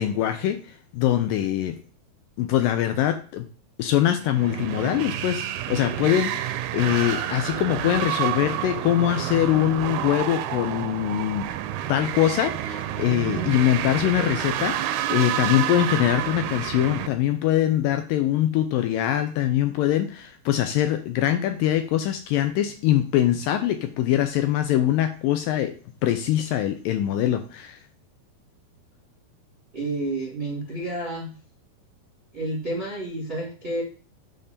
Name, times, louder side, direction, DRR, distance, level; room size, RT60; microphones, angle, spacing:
voice 1, 0.0-1.8 2.4-3.5 3.8-11.5 11.9-25.7 26.0-27.8, left 12 dB, 80° left, 7 dB, 2.1 m, -23 dB
sound 1, 4.2-17.1, right 11 dB, 85° right, 2.6 m, -29 dB
voice 2, 29.7-31.4 32.3-33.8, right 2 dB, 25° right, -3 dB, 1.2 m, -30 dB
7.8 x 3.6 x 6.7 m, 0.39 s
omnidirectional pair, 4.4 m